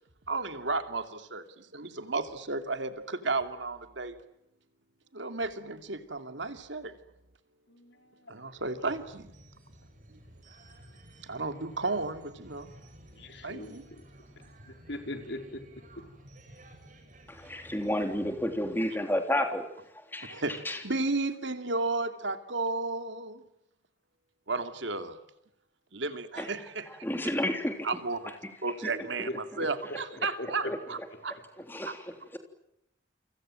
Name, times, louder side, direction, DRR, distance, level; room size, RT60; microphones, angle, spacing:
voice 1, 0.3-4.2 5.1-6.9 8.3-9.3 11.2-12.7 13.4-13.8 20.3-20.5 20.8-23.4 24.5-25.2 25.9-27.1 27.8-28.3 28.6-31.0 31.2-31.4 31.8-31.9, right 3 dB, 75° right, 8 dB, 2.6 m, -33 dB
voice 2, 7.7-8.4 13.1-14.1 14.7-15.6 16.0-16.1 20.3-20.4 29.3-29.7 30.4-30.7, left 1 dB, 65° left, 6 dB, 4.4 m, -40 dB
sound 1, 8.7-18.8, right 1 dB, 40° right, 7.1 m, -53 dB
voice 3, 17.3-19.7 20.1-20.8 26.4-26.5 27.0-27.9 28.8-28.9 29.5-29.7 30.6-30.8 31.7-32.4, left 1 dB, 10° left, 5 dB, 3.4 m, -31 dB
29.5 x 25.0 x 7.7 m, 0.79 s
head